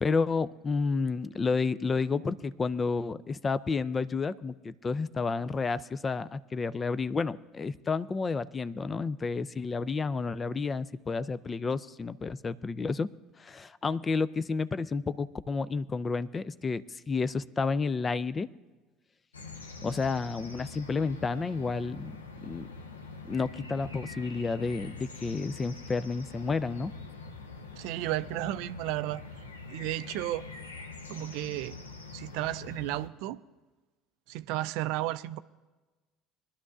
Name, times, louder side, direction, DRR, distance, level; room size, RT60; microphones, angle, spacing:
voice 1, 0.0-13.1 13.4-18.5 19.8-22.1 22.4-22.7 23.3-26.9, left 4 dB, 25° left, 0.5 m, -31 dB
sound 1, 19.3-33.1, left 3 dB, 85° left, 0.8 m, -44 dB
voice 2, 27.8-29.2 29.7-30.5 31.1-31.8 32.1-33.4 34.3-35.4, right 15 dB, 65° right, 0.4 m, -33 dB
23.0 x 11.5 x 2.5 m
figure-of-eight pair, 65°, 0 cm